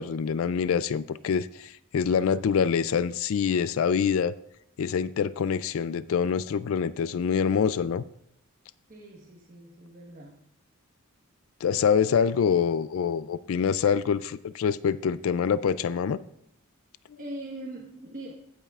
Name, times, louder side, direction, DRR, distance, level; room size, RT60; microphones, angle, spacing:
voice 1, 0.0-4.3 4.8-8.0 11.6-16.2, left 7 dB, 70° left, 0.3 m, -25 dB
voice 2, 8.9-10.5 17.2-18.3, right 1 dB, 35° right, 1.3 m, -41 dB
16.0 x 8.5 x 2.4 m
head